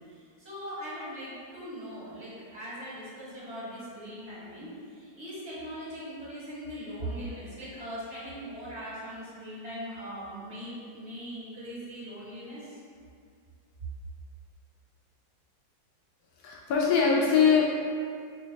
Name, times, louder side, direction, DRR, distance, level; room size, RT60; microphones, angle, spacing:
voice 1, 0.0-12.8, equal, 35° right, -9 dB, 1.7 m, -40 dB
voice 2, 16.4-17.7, left 6 dB, 75° left, -3 dB, 0.8 m, -22 dB
5.8 x 2.3 x 3.8 m, 2.2 s
omnidirectional pair, 2.1 m